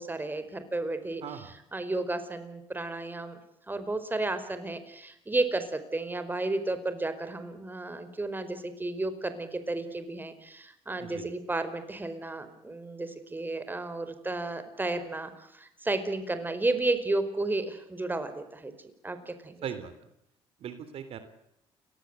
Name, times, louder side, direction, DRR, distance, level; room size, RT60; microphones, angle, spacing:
voice 1, 0.0-3.4 3.7-18.7 19.0-19.6, right 2 dB, 20° right, 10 dB, 4.9 m, -32 dB
voice 2, 1.2-1.5 11.0-11.2 19.6-19.9 20.6-21.2, right 8 dB, 65° right, 11 dB, 3.3 m, -38 dB
29.5 x 19.5 x 8.1 m, 0.79 s
supercardioid pair, 75°, 11 cm